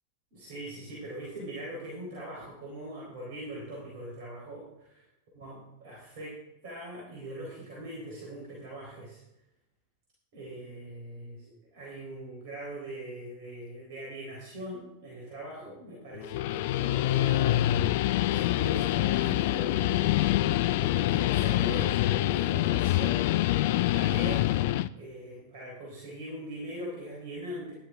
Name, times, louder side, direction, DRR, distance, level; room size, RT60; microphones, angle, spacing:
voice 1, 0.3-4.7 5.3-6.4 6.6-9.2 10.3-11.4 11.7-20.5 20.8-23.2 23.9-24.5 24.9-27.7, right 1 dB, 50° right, -4 dB, 3.8 m, -41 dB
Guitar, 16.2-24.9, left 15 dB, 50° left, 0.3 m, -26 dB
12.5 x 11.0 x 3.6 m, 0.88 s
figure-of-eight pair, 90°, 0 cm